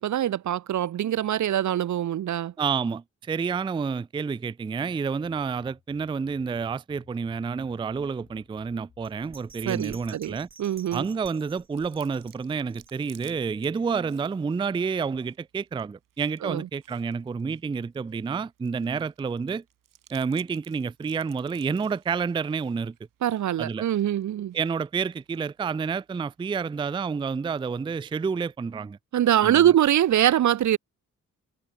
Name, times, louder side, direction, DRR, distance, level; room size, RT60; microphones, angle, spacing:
voice 1, 0.0-2.5 9.7-11.1 16.4-16.7 23.2-24.5 29.1-30.8, right 11 dB, 65° right, 0.7 m, -23 dB
voice 2, 2.6-10.5 10.9-19.6 20.1-23.0 23.6-23.8 24.5-29.0 29.4-29.7, right 5 dB, 15° right, 0.3 m, -29 dB
sound 1, 5.2-10.5, left 7 dB, 65° left, 5.3 m, -59 dB
Bell, 9.0-13.4 13.8-13.9, right 4 dB, 40° right, 7.3 m, -51 dB
Chewing mastication, 11.0-28.6, right 12 dB, 90° right, 4.8 m, -60 dB
cardioid pair, 60°, 32 cm